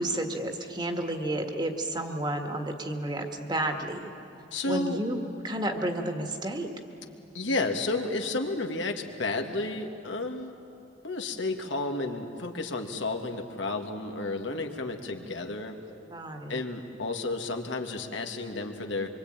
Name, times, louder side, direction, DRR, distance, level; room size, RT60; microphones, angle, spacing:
voice 1, 0.0-4.1 4.6-6.7 16.1-16.6, right 1 dB, 25° right, 4 dB, 1.7 m, -31 dB
voice 2, 4.5-5.0 7.3-10.6 11.0-15.8 16.5-19.1, left 2 dB, 90° left, 4 dB, 2.0 m, -32 dB
25.5 x 23.5 x 8.9 m, 2.7 s
head